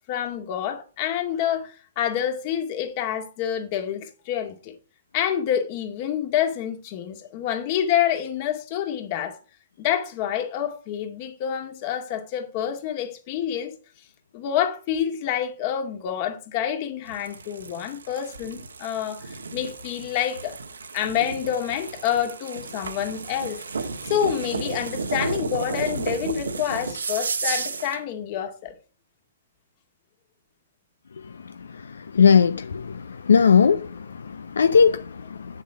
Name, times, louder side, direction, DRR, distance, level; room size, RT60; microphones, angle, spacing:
voice 1, 0.1-4.8 5.1-9.4 9.8-13.7 14.3-20.6 20.9-23.6 24.1-28.7, left 10 dB, 45° left, 2.0 m, -27 dB
sound 1, 17.1-28.0, right 4 dB, 85° right, 1.5 m, -33 dB
voice 2, 32.1-33.9 34.2-35.0, left 6 dB, 80° left, 0.6 m, -17 dB
8.8 x 7.3 x 4.8 m
hypercardioid pair, 125°, 0 cm